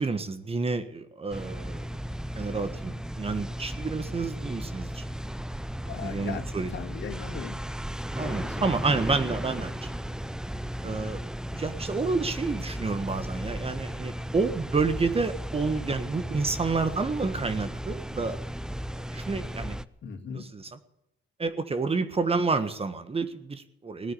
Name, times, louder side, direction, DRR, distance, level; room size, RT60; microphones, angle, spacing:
voice 1, 0.0-1.9 2.3-5.0 6.0-6.7 8.1-9.9 10.8-11.2 11.5-18.4 19.1-19.8 20.3-20.7 21.4-24.1, right 4 dB, 30° right, 11 dB, 1.5 m, -29 dB
sound 1, 1.3-19.9, equal, 5° right, 0.6 m, -35 dB
voice 2, 5.9-7.6 8.2-8.8 20.0-20.5, left 7 dB, 65° left, 4 dB, 2.3 m, -39 dB
18.0 x 9.4 x 8.5 m, 0.81 s
cardioid pair, 90°, 20 cm